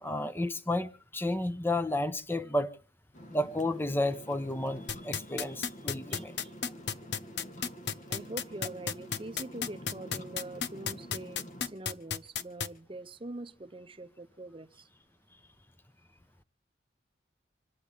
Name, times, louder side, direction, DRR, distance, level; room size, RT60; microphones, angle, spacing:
voice 1, 0.0-2.8 3.3-6.3, left 1 dB, 10° left, 0.9 m, -32 dB
sound 1, 3.1-11.7, equal, 45° left, 1.6 m, -48 dB
sound 2, 4.9-12.7, left 7 dB, 75° left, 1.0 m, -32 dB
voice 2, 6.1-6.5 8.1-14.9, right 2 dB, 30° right, 0.8 m, -44 dB
27.0 x 10.0 x 3.6 m
head